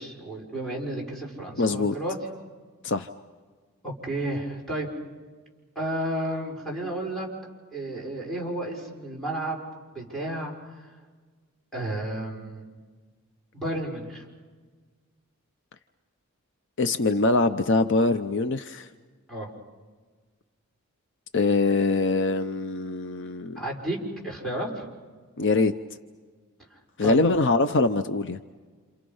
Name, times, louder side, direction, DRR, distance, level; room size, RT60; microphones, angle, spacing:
voice 1, 0.0-2.2 3.8-4.9 5.8-7.3 7.7-9.6 9.9-10.9 11.7-12.7 13.5-14.2 19.3-19.5 23.6-24.0 24.2-24.8 26.7-27.2, right 1 dB, ahead, -3 dB, 5.5 m, -32 dB
voice 2, 1.6-1.9 2.8-3.1 16.8-18.9 21.3-23.6 25.4-25.7 27.0-28.4, left 3 dB, 55° left, 9 dB, 0.7 m, -23 dB
30.0 x 28.0 x 5.6 m, 1.5 s
head